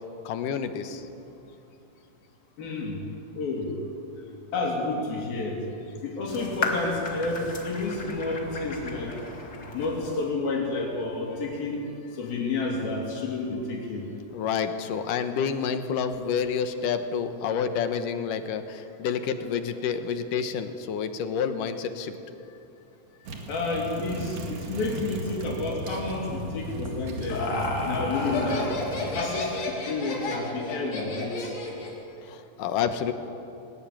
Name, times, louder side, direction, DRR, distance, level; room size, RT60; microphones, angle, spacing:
voice 1, 0.3-1.1 14.3-22.4 32.2-33.1, left 7 dB, 70° left, 9 dB, 2.5 m, -29 dB
voice 2, 2.6-3.0 3.4-3.7 4.5-5.6 6.0-9.1 9.7-11.8 12.2-14.1 23.5-27.5 27.8-28.7 29.0-31.5, left 3 dB, 90° left, -1 dB, 5.3 m, -30 dB
sound 1, 6.3-10.3, left 2 dB, 30° left, 2.5 m, -35 dB
sound 2, 23.3-29.2, right 1 dB, 55° right, 3.0 m, -36 dB
Laughter, 26.9-32.0, left 2 dB, 50° left, 3.9 m, -32 dB
20.5 x 20.0 x 8.8 m, 2.8 s
omnidirectional pair, 4.1 m